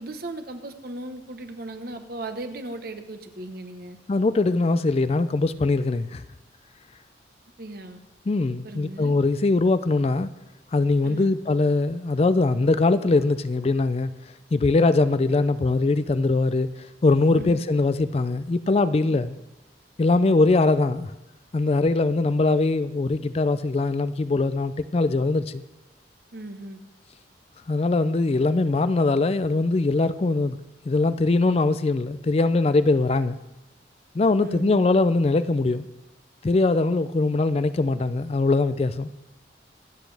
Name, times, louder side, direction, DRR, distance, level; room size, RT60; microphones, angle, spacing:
voice 1, 0.0-4.0 7.6-8.0 8.6-9.1 11.0-11.4 17.4-17.6 19.1-19.2 26.3-26.8 34.4-34.8, right 2 dB, 55° right, 1.1 m, -37 dB
voice 2, 4.1-6.2 8.3-10.3 10.7-14.1 14.5-16.7 17.0-19.4 20.0-21.1 21.5-25.6 27.7-30.6 30.9-33.4 34.1-35.9 36.4-39.1, left 3 dB, 35° left, 0.4 m, -22 dB
24.5 x 8.3 x 3.4 m
head